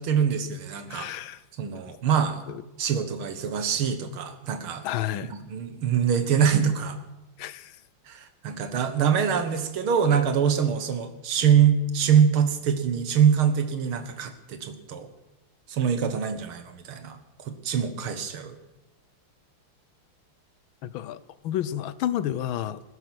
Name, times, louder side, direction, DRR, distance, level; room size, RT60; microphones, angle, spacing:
voice 1, 0.0-1.1 1.6-2.4 2.8-4.8 5.3-7.0 8.1-15.1 15.7-18.6, right 7 dB, 80° right, 8 dB, 2.3 m, -24 dB
voice 2, 0.9-1.4 2.5-2.6 4.8-5.3 7.4-7.8 20.8-22.8, left 11 dB, 75° left, 16 dB, 1.5 m, -31 dB
19.5 x 10.5 x 6.1 m, 0.99 s
omnidirectional pair, 2.3 m